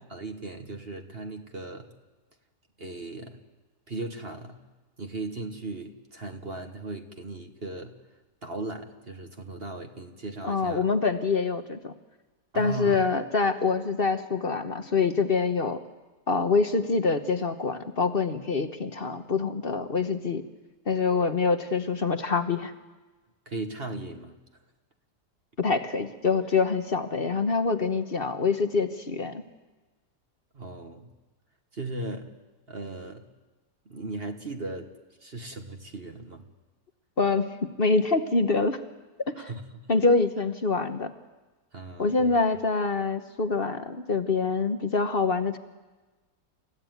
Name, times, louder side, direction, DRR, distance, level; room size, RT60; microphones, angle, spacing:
voice 1, 0.1-1.9 2.8-3.4 3.9-4.6 5.0-8.0 8.4-10.9 12.5-13.0 23.4-24.4 30.5-31.1 31.7-32.4 32.7-33.3 33.8-34.9 35.2-36.4 39.4-39.9 41.7-42.3, right 2 dB, 35° right, 5 dB, 1.6 m, -37 dB
voice 2, 10.4-11.9 12.5-15.8 16.3-20.4 20.9-22.7 25.6-29.4 37.2-37.5 37.8-38.8 39.3-39.5 39.9-41.1 42.0-45.6, left 4 dB, 40° left, 8 dB, 1.1 m, -25 dB
29.0 x 15.5 x 9.3 m, 1.2 s
omnidirectional pair, 1.8 m